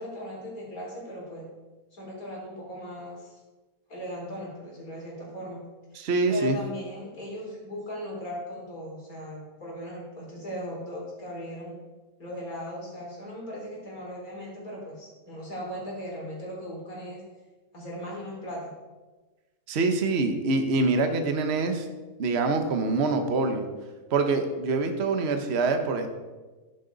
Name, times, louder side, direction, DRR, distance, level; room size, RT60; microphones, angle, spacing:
voice 1, 0.0-1.5 1.9-3.4 3.9-5.6 5.9-6.0 6.3-11.7 12.2-17.2 17.7-18.7, equal, 65° left, -4 dB, 4.5 m, -38 dB
voice 2, 5.9-6.6 19.7-21.9 22.2-23.7 24.1-26.1, right 3 dB, 45° right, 6 dB, 1.2 m, -25 dB
11.5 x 11.0 x 4.0 m, 1.2 s
omnidirectional pair, 1.6 m